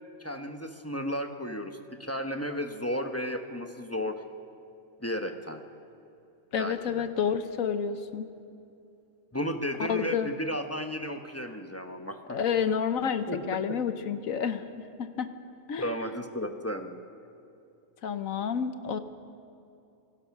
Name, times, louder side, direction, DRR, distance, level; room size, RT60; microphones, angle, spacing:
voice 1, 0.2-4.2 5.0-5.6 6.6-7.1 9.3-12.4 13.3-13.4 13.7-13.8 15.8-17.0, equal, 10° left, 5 dB, 0.9 m, -34 dB
voice 2, 6.5-8.3 9.9-10.3 12.3-15.3 15.7-16.0 18.0-19.0, left 7 dB, 65° left, 10 dB, 1.3 m, -30 dB
27.5 x 17.5 x 6.0 m, 2.6 s
omnidirectional pair, 1.5 m